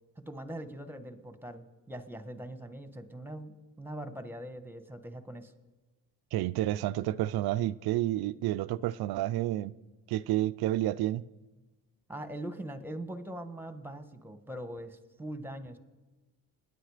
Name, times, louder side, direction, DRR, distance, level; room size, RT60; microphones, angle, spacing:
voice 1, 0.2-5.5 12.1-15.8, right 1 dB, 5° right, 1.4 m, -42 dB
voice 2, 6.3-9.7 10.1-11.2, right 14 dB, 75° right, 0.6 m, -30 dB
27.0 x 9.9 x 5.0 m
cardioid pair, 95°, 38 cm